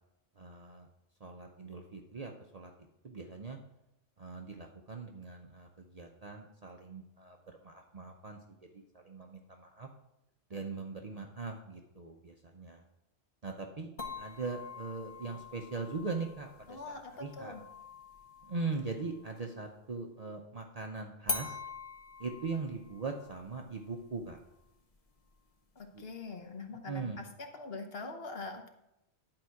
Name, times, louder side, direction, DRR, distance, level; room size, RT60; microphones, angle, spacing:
voice 1, 0.4-0.9 1.2-2.7 3.0-3.6 4.2-8.4 8.7-9.9 10.5-12.8 13.4-13.9 14.2-17.5 18.4-21.6 22.2-24.4 25.9-26.0 26.9-27.2, right 4 dB, 40° right, 2 dB, 0.7 m, -40 dB
sound 1, 14.0-19.6 21.3-26.3, left 3 dB, 35° left, 1.0 m, -45 dB
voice 2, 16.7-17.6 25.8-28.7, left 3 dB, 60° left, 5 dB, 1.2 m, -43 dB
10.5 x 4.7 x 5.7 m, 0.87 s
omnidirectional pair, 1.1 m